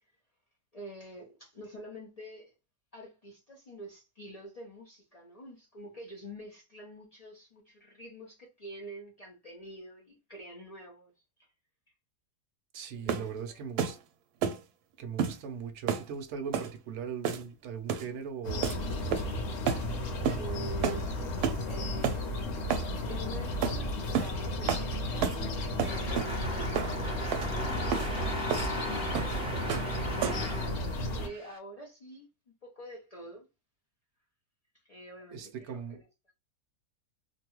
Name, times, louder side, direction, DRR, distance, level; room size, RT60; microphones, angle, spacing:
voice 1, 0.7-2.5 2.9-11.1 11.4-11.5 12.9-13.6 20.3-22.3 23.1-25.4 25.8-27.7 28.0-29.2 29.5-29.9 31.1-33.5 34.9-36.3, right 1 dB, 80° left, 0.3 m, -47 dB
voice 2, 12.7-14.0 15.0-19.1 35.3-36.0, right 7 dB, 60° right, 0.7 m, -39 dB
sound 1, 13.1-13.3 13.8-14.0 14.4-14.6 15.2-15.4 15.9-16.1 16.5-16.7 17.2-17.5 17.9-18.1 18.6-18.8 19.1-19.4 19.7-19.8 20.2-20.4 20.8-21.0 21.4-21.6 22.0-22.2 22.7-22.9 23.6-23.8 24.1-24.3 24.7-24.9 25.2-25.4 25.8-26.3 26.7-26.9 27.3-27.5 27.9-28.1 28.5-28.7 29.1-29.4 29.7-29.9 30.2-30.5, right 7 dB, 75° right, 1.1 m, -30 dB
sound 2, 18.4-31.3, left 1 dB, 55° left, 1.0 m, -34 dB
sound 3, 25.8-31.6, equal, 5° right, 0.5 m, -37 dB
3.0 x 2.3 x 2.9 m
omnidirectional pair, 1.7 m